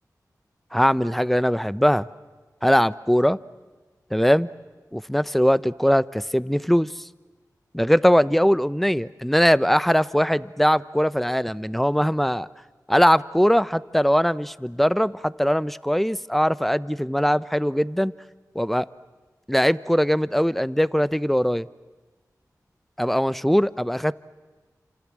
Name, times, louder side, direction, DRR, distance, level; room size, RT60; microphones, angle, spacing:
voice 1, 0.7-2.1 2.6-3.4 4.1-4.5 4.9-6.9 7.7-12.5 12.9-18.1 18.5-18.9 19.5-21.7 23.0-24.1, equal, 5° left, 17 dB, 0.9 m, -21 dB
29.5 x 27.0 x 7.6 m, 1.3 s
cardioid pair, 45°, 7 cm